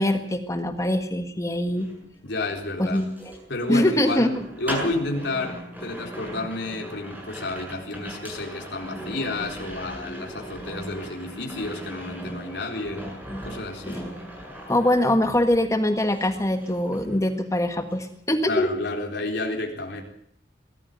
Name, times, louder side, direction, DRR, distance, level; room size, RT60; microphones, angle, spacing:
voice 1, 0.0-1.9 2.8-3.1 3.7-4.3 13.8-14.0 14.7-18.7, left 1 dB, 15° left, 7 dB, 1.6 m, -23 dB
sound 1, 1.6-15.8 16.1-17.6 17.8-18.2, equal, 10° right, 7.7 m, -38 dB
voice 2, 2.2-3.0 3.5-4.3 4.6-13.1 13.4-14.0 18.4-20.0, left 2 dB, 70° left, 1 dB, 4.1 m, -30 dB
20.5 x 14.0 x 9.3 m, 0.66 s
head